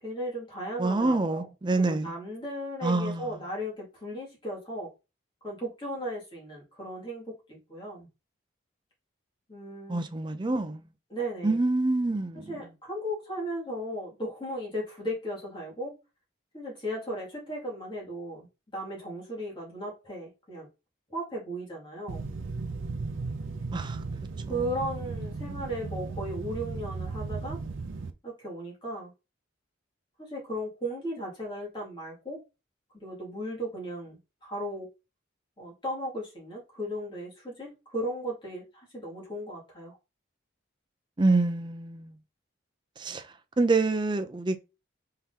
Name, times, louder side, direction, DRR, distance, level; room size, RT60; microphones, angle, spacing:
voice 1, 0.0-4.9 5.4-8.1 9.5-10.1 11.1-11.6 12.5-16.0 16.5-18.5 18.7-20.7 21.1-22.2 24.5-27.6 28.2-29.1 30.2-32.4 32.9-34.9 35.6-40.0, equal, 25° left, 2.3 m, -36 dB
voice 2, 0.8-2.1 2.8-3.3 9.9-10.8 11.4-12.4 23.7-24.0 24.5-24.6 41.2-42.2 43.0-43.2 43.6-44.6, right 3 dB, 25° right, 0.4 m, -26 dB
sound 1, 22.1-28.1, right 4 dB, 75° right, 0.5 m, -36 dB
4.5 x 3.8 x 2.8 m
head